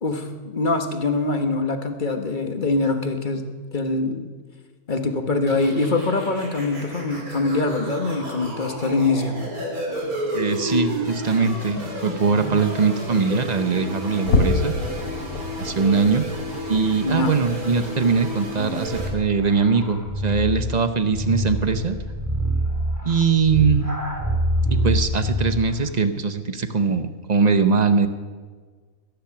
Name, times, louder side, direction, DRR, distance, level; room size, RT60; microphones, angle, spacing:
voice 1, 0.0-4.3 4.9-9.4 17.0-17.4, left 3 dB, 35° left, 6 dB, 1.4 m, -24 dB
sound 1, 5.5-19.1, equal, 70° right, 3.8 m, -31 dB
voice 2, 10.3-14.7 15.6-16.2 16.7-22.0 23.0-23.9 24.7-28.1, right 5 dB, 35° right, 9 dB, 0.8 m, -21 dB
sound 2, 14.2-20.9 21.3-21.5 22.0-22.1 22.7-22.8, left 3 dB, 60° left, 1.6 m, -29 dB
sound 3, 18.9-25.7, equal, 10° right, 2.2 m, -26 dB
21.5 x 10.5 x 6.0 m, 1.5 s
omnidirectional pair, 1.6 m